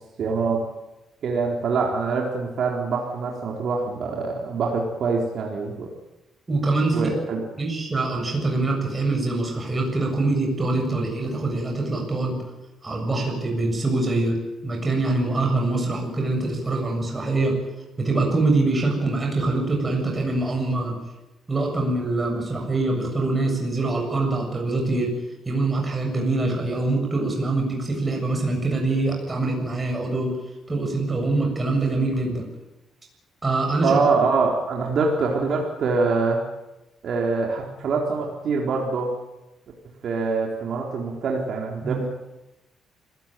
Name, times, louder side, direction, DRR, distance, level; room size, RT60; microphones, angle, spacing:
voice 1, 0.2-0.6 1.2-5.9 6.9-7.4 33.8-36.4 37.0-39.1 40.0-42.1, right 4 dB, 60° right, -1 dB, 4.1 m, -24 dB
voice 2, 6.5-7.1 7.6-12.4 12.8-17.6 18.0-21.0 21.5-25.2 25.4-30.4 30.7-32.5 33.4-34.0 41.8-42.0, right 2 dB, 25° right, 1 dB, 7.3 m, -24 dB
26.0 x 17.0 x 9.2 m, 1.0 s
cardioid pair, 90°, 0 cm